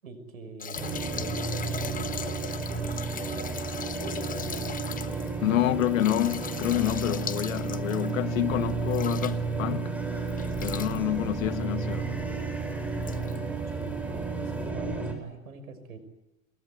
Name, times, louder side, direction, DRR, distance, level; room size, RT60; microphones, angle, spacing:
voice 1, 0.0-4.7 5.0-5.8 13.7-16.0, right 4 dB, 85° right, 6.1 m, -43 dB
sound 1, 0.6-9.8 10.3-11.0 11.9-12.0 12.4-12.5 13.0-13.4 14.4-14.5, left 7 dB, 20° left, 1.2 m, -39 dB
sound 2, 0.8-15.1, right 4 dB, 5° right, 7.2 m, -32 dB
voice 2, 5.4-10.0 10.6-12.3, left 14 dB, 75° left, 1.3 m, -28 dB
27.0 x 21.5 x 9.5 m
hypercardioid pair, 95°, 41 cm